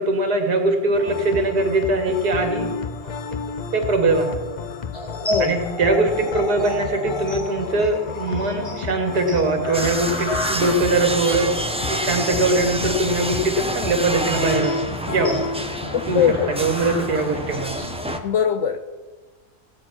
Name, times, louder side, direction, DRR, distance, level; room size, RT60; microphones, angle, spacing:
voice 1, 0.0-2.7 3.7-4.4 5.4-11.5 11.9-14.8 15.1-15.4 16.1-16.2 16.6-17.7, right 2 dB, 75° right, 3 dB, 2.3 m, -21 dB
sound 1, 0.9-18.2, left 4 dB, 80° left, 0.4 m, -32 dB
sound 2, 4.9-18.0, left 1 dB, 20° left, 1.7 m, -33 dB
sound 3, 9.7-18.2, right 1 dB, 10° right, 0.3 m, -29 dB
voice 2, 15.9-16.5 18.2-18.9, left 8 dB, 65° left, 9 dB, 0.8 m, -21 dB
16.0 x 9.0 x 6.1 m, 1.3 s
omnidirectional pair, 1.7 m